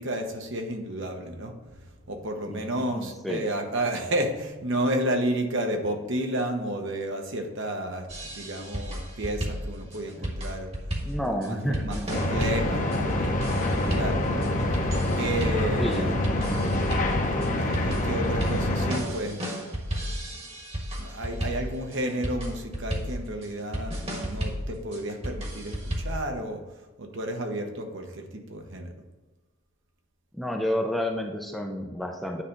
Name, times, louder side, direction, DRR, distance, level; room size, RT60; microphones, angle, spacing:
voice 1, 0.0-8.1 8.3-10.7 11.2-13.3 13.9-14.5 15.2-16.3 17.6-20.4 21.0-26.6 27.0-28.9, right 1 dB, 60° right, 4 dB, 1.0 m, -31 dB
voice 2, 2.5-3.5 10.2-10.3 11.0-12.1 15.8-16.2 30.3-32.4, equal, ahead, 1 dB, 0.5 m, -30 dB
sound 1, 8.1-26.2, equal, 30° right, 1.3 m, -33 dB
sound 2, 12.1-19.0, left 1 dB, 35° left, 0.9 m, -26 dB
9.6 x 3.3 x 5.3 m, 1.1 s
head